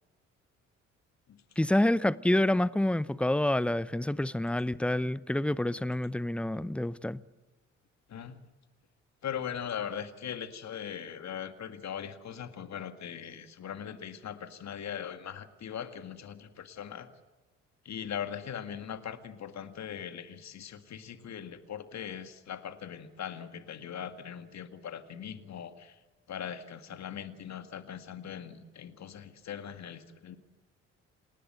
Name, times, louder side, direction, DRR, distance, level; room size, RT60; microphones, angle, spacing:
voice 1, 1.6-7.2, left 1 dB, 5° left, 0.7 m, -28 dB
voice 2, 9.2-17.1 17.8-26.0 26.3-30.4, left 8 dB, 45° left, 2.0 m, -40 dB
27.5 x 19.0 x 7.9 m
figure-of-eight pair, 50°, 37 cm